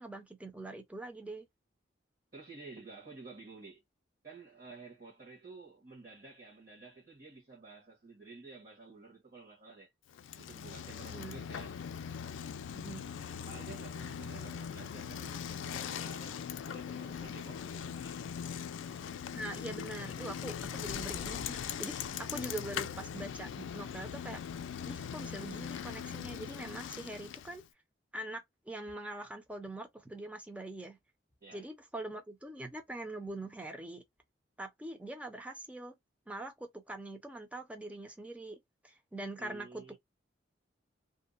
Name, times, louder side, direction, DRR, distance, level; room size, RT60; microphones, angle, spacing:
voice 1, 0.0-1.5 11.1-11.4 12.7-13.1 19.3-24.4 24.9-27.6 28.1-31.0 31.5-34.0 34.6-36.0 36.3-38.6 38.8-40.0, right 1 dB, 5° right, 0.5 m, -43 dB
voice 2, 2.3-3.8 4.2-9.9 10.4-11.8 13.5-18.2 31.4-31.7 39.4-40.0, right 3 dB, 45° right, 1.1 m, -52 dB
Bicycle, 10.1-27.7, left 8 dB, 75° left, 0.3 m, -41 dB
2.7 x 2.1 x 2.4 m
head